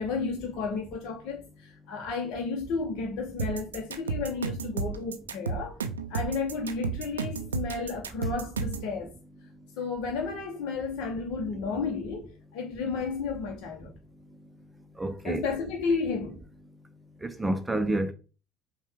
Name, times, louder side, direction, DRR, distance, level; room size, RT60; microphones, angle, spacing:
voice 1, 0.0-5.8 6.1-9.1 9.8-13.9 15.2-16.4, left 4 dB, 60° left, 0.7 m, -32 dB
sound 1, 3.4-8.9, right 5 dB, 85° right, 0.3 m, -32 dB
voice 2, 15.0-15.4 17.2-18.1, right 1 dB, 15° right, 0.4 m, -28 dB
5.4 x 2.2 x 3.4 m
hypercardioid pair, 65°, 0 cm